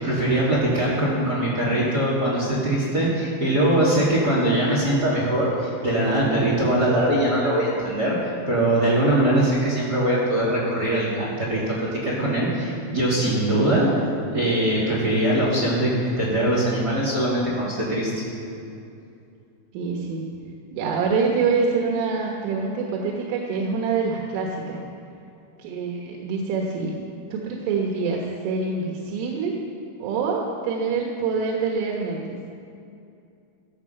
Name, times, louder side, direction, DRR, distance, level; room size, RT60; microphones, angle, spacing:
voice 1, 0.0-13.9 14.3-18.2, right 1 dB, 25° right, -5 dB, 2.3 m, -22 dB
voice 2, 19.7-20.2 20.7-24.8 25.6-26.9 27.3-29.6 30.0-32.2, right 4 dB, 90° right, -1 dB, 3.8 m, -25 dB
16.0 x 14.5 x 5.8 m, 2.5 s
omnidirectional pair, 5.5 m